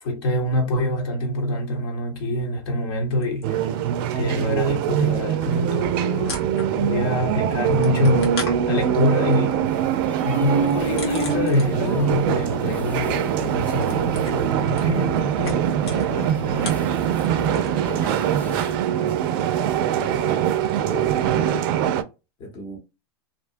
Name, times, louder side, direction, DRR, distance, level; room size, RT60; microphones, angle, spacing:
voice 1, 0.0-3.6 4.1-6.4 6.8-8.4 8.6-9.6 10.2-16.9, left 1 dB, 65° left, 1.1 m, -25 dB
sound 1, 3.2-4.1 4.3-7.1 7.4-12.1 12.3-17.9 18.1-21.1, left 3 dB, 85° left, 1.2 m, -39 dB
sound 2, 3.4-22.0, right 9 dB, 60° right, 0.4 m, -23 dB
voice 2, 6.5-7.4 17.4-19.2 19.6-20.5 20.7-21.7 22.4-22.8, equal, 35° left, 0.9 m, -37 dB
sound 3, 9.6-18.8, left 2 dB, 10° left, 0.4 m, -40 dB
2.6 x 2.1 x 2.5 m
hypercardioid pair, 115°, 13 cm